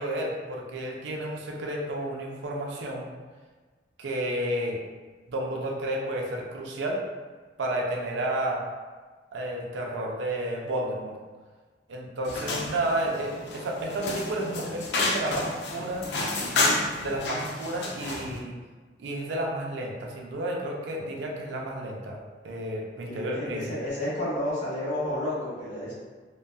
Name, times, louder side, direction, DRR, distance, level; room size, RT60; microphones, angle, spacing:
voice 1, 0.0-3.0 4.0-4.8 5.3-7.0 7.6-8.6 9.3-11.2 11.9-16.1 17.0-18.6 19.0-22.2 22.4-23.7, right 1 dB, 75° right, 0 dB, 0.4 m, -31 dB
sound 1, 12.2-18.4, left 2 dB, 65° left, 0.4 m, -30 dB
voice 2, 23.1-25.9, left 1 dB, 40° left, -9 dB, 1.1 m, -31 dB
2.6 x 2.2 x 2.2 m, 1.4 s
head